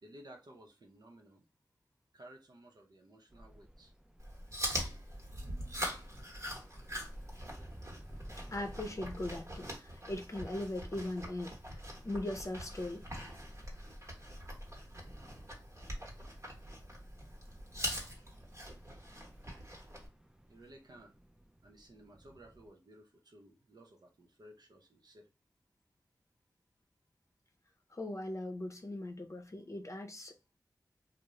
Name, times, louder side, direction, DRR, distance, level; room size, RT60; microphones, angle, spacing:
voice 1, 0.0-1.5 2.1-3.9 20.5-21.1 21.6-25.3, right 1 dB, 70° right, 0.7 m, -56 dB
sound 1, 3.3-22.7, equal, 10° right, 0.3 m, -55 dB
Chewing mastication, 4.2-20.1, equal, 45° right, 1.0 m, -43 dB
voice 2, 8.5-11.5 12.0-13.0 27.9-30.6, left 1 dB, 45° left, 0.6 m, -39 dB
2.4 x 2.0 x 3.0 m
cardioid pair, 45°, 7 cm